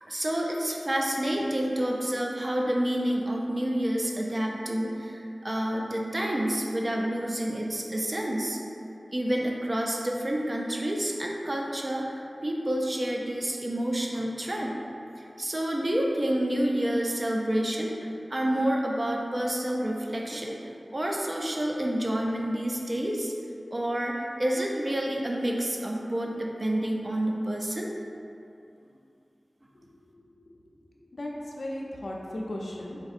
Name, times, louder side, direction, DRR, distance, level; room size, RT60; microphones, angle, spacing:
voice 1, 0.0-8.6 9.1-12.1 12.4-14.7 15.2-23.3 23.7-27.9, right 1 dB, 35° right, -1 dB, 0.4 m, -29 dB
voice 2, 29.7-30.4 31.1-33.0, left 1 dB, 75° left, -2 dB, 0.4 m, -37 dB
4.0 x 2.6 x 2.4 m, 2.6 s
wide cardioid pair, 65°, 0 cm